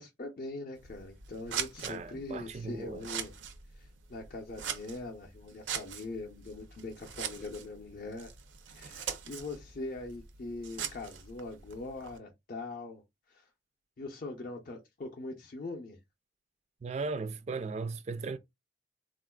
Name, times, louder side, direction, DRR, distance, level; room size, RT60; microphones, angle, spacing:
voice 1, 0.0-3.3 3.7-8.3 8.7-13.0 13.3-13.5 14.0-16.0, left 2 dB, 45° left, 0.5 m, -42 dB
Scissors, 0.7-12.2, right 8 dB, 80° right, 0.6 m, -42 dB
voice 2, 1.8-3.0 16.8-18.4, right 4 dB, 35° right, 0.3 m, -37 dB
3.7 x 2.4 x 2.2 m
head